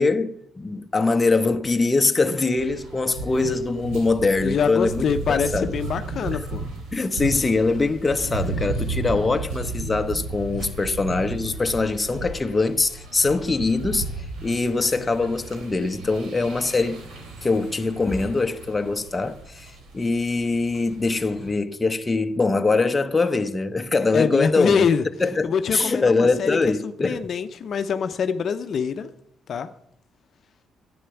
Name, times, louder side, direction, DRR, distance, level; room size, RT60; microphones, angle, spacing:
voice 1, 0.0-5.7 6.3-6.4 6.9-14.1 14.4-17.0 17.4-24.9 25.2-27.2, left 3 dB, 25° left, 0.9 m, -23 dB
sound 1, 2.5-21.5, right 3 dB, 90° right, 3.3 m, -34 dB
voice 2, 4.4-6.6 24.1-25.0 25.4-26.6 26.8-29.1 29.5-29.7, left 6 dB, 55° left, 0.7 m, -24 dB
11.0 x 8.8 x 7.1 m
cardioid pair, 90°, 0 cm